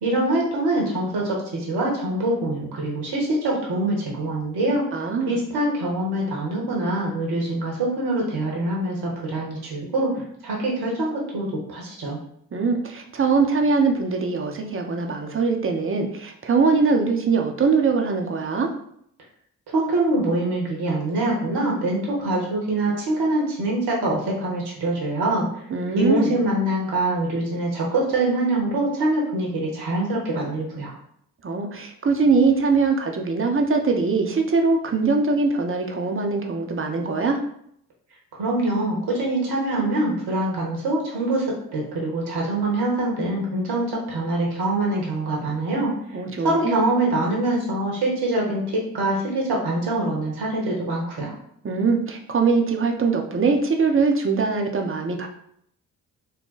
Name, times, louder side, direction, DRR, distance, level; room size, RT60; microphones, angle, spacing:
voice 1, 0.0-4.8 5.2-12.2 19.7-25.5 25.9-30.9 38.4-45.9 46.4-51.3, right 2 dB, 65° right, -3 dB, 1.3 m, -24 dB
voice 2, 4.9-5.4 12.5-18.7 25.7-26.4 31.4-37.4 46.1-46.7 51.6-55.3, right 4 dB, 30° right, 3 dB, 0.8 m, -22 dB
4.0 x 2.2 x 3.9 m, 0.69 s
hypercardioid pair, 40°, 43 cm